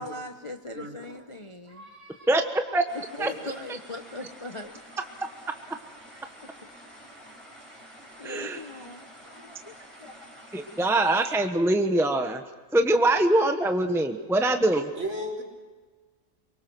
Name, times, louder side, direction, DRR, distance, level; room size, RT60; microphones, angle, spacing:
voice 1, 0.0-1.9 3.1-4.8 6.4-6.7 7.0-7.5 8.2-10.4, left 1 dB, 25° left, 5 dB, 0.9 m, -41 dB
voice 2, 1.7-2.5 3.2-3.3 15.0-15.4, equal, 55° right, -1 dB, 4.2 m, -36 dB
sound 1, 2.9-11.4, equal, 20° right, 4.9 m, -49 dB
voice 3, 8.2-8.6 10.5-12.4 12.7-14.9, right 1 dB, ahead, 6 dB, 1.1 m, -23 dB
24.5 x 23.0 x 6.2 m, 1.3 s
omnidirectional pair, 1.5 m